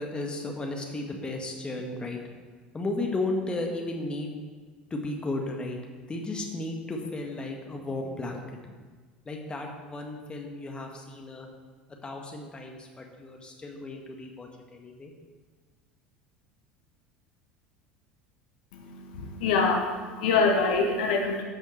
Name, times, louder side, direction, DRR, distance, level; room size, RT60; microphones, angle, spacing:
voice 1, 0.0-2.2 2.7-4.4 4.9-5.8 6.1-8.4 9.3-11.5 12.0-15.1, left 2 dB, 20° left, 2 dB, 1.7 m, -34 dB
voice 2, 18.7-21.4, left 4 dB, 60° left, 2 dB, 1.2 m, -25 dB
13.5 x 5.6 x 4.5 m, 1.4 s
figure-of-eight pair, 70°, 5 cm